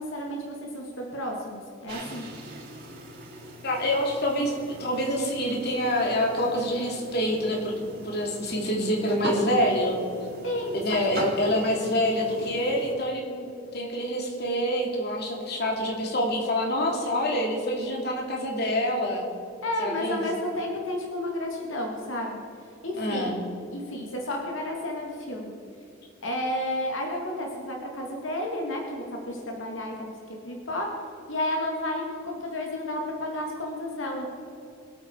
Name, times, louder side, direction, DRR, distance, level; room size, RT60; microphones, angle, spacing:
voice 1, 0.0-2.3 10.4-11.2 19.6-22.4 22.8-23.3 23.7-25.5 26.2-30.9 31.3-34.3, left 1 dB, 80° left, 0 dB, 2.3 m, -32 dB
sound 1, 1.9-12.9, right 1 dB, 55° right, 3.8 m, -40 dB
voice 2, 3.6-4.5 4.8-10.0 10.7-13.5 13.7-19.3 19.8-20.2 23.0-23.4, equal, 55° left, 0 dB, 2.7 m, -26 dB
23.0 x 9.0 x 4.6 m, 2.6 s
head